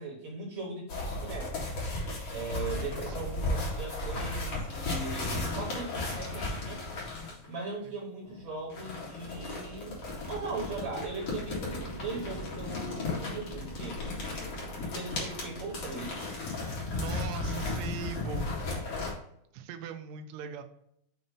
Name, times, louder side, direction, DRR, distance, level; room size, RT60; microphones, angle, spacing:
voice 1, 0.0-1.5 2.3-6.8 7.5-10.0 10.3-14.1 14.8-16.4, right 3 dB, 50° right, -2 dB, 1.9 m, -39 dB
sound 1, 0.9-7.5 8.7-19.1, left 2 dB, 45° left, 2.4 m, -35 dB
voice 2, 2.6-3.3 7.8-8.0 16.9-18.6 19.5-20.6, right 7 dB, 80° right, 6 dB, 1.7 m, -41 dB
sound 2, 8.2-18.4, right 2 dB, 65° left, 1.5 m, -47 dB
7.1 x 2.7 x 5.3 m, 0.74 s
omnidirectional pair, 4.1 m